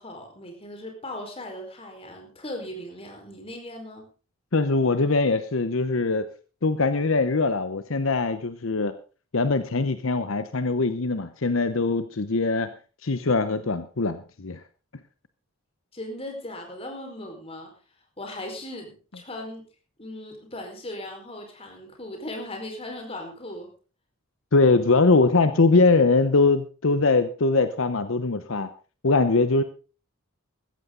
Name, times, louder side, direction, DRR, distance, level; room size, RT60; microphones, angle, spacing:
voice 1, 0.0-4.1 15.9-17.7 18.2-19.6 20.0-23.7, left 1 dB, 30° left, 3 dB, 4.6 m, -38 dB
voice 2, 4.5-6.3 6.6-9.0 9.3-12.7 13.0-14.6 24.5-28.7 29.0-29.6, left 3 dB, 70° left, 11 dB, 0.9 m, -22 dB
15.5 x 13.5 x 3.9 m, 0.36 s
head